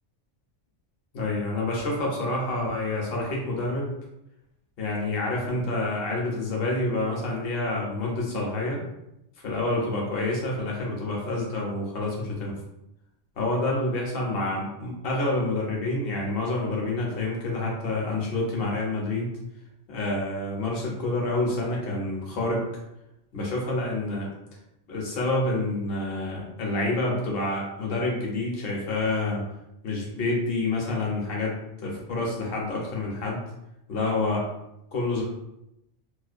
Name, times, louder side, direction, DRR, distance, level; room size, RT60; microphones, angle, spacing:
voice 1, 1.1-4.0 4.8-8.8 9.4-12.6 13.4-19.3 19.9-22.7 23.3-24.3 24.9-29.4 29.8-31.5 31.8-33.4 33.9-34.5 34.9-35.2, left 2 dB, 60° left, -2 dB, 0.8 m, -28 dB
2.4 x 2.1 x 2.4 m, 0.86 s
omnidirectional pair, 1.2 m